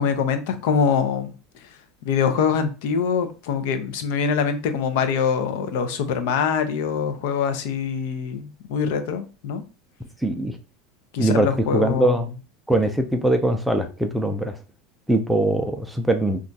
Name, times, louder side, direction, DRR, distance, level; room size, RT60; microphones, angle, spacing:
voice 1, 0.0-1.3 2.0-9.6 11.1-12.2, left 6 dB, 70° left, 0.5 m, -24 dB
voice 2, 10.2-10.6 11.2-12.3 12.7-14.5 15.1-16.5, right 1 dB, 5° right, 0.3 m, -22 dB
2.4 x 2.3 x 3.9 m
supercardioid pair, 150°, 0 cm